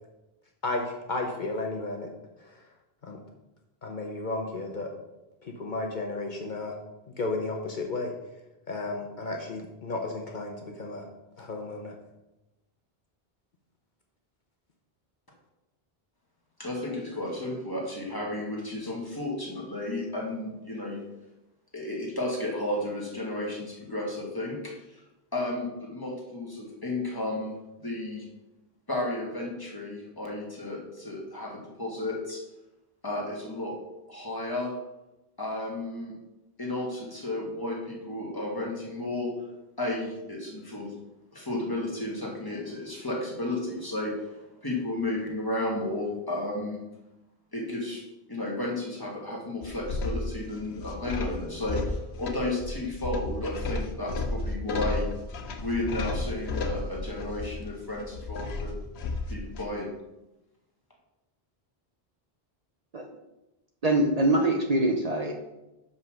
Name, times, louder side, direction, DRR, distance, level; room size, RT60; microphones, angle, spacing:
voice 1, 0.6-2.1 2.4-2.5 3.0-3.2 3.8-4.9 5.4-6.8 7.2-8.1 8.7-11.1 11.4-12.0, left 2 dB, 50° left, 2 dB, 1.0 m, -33 dB
voice 2, 16.6-21.0 21.7-25.0 25.3-28.3 28.9-32.4 33.0-33.8 34.1-34.7 35.4-36.1 36.6-39.3 39.8-40.9 41.3-46.8 47.5-48.0 48.3-55.1 55.6-58.8 59.3-59.9, left 1 dB, 20° left, -2 dB, 1.6 m, -33 dB
sound 1, 49.6-59.7, left 2 dB, 85° left, 1.0 m, -33 dB
voice 3, 63.8-65.3, right 1 dB, 40° right, 2 dB, 0.8 m, -23 dB
5.7 x 5.5 x 6.2 m, 0.98 s
omnidirectional pair, 1.0 m